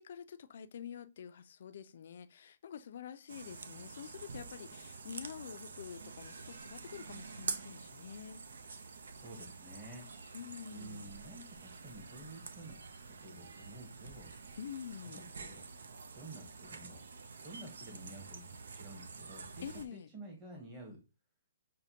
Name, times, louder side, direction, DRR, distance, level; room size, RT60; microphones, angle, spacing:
voice 1, 0.0-8.4 10.3-11.0 14.6-15.2 19.6-20.1, left 8 dB, 60° left, 0.4 m, -47 dB
sound 1, 3.3-19.9, right 4 dB, 80° right, 0.6 m, -47 dB
voice 2, 9.1-10.1 10.7-14.3 15.0-15.6 16.1-17.0 17.4-21.0, right 1 dB, 15° right, 1.0 m, -51 dB
6.3 x 2.1 x 2.8 m
hypercardioid pair, 150°, 0 cm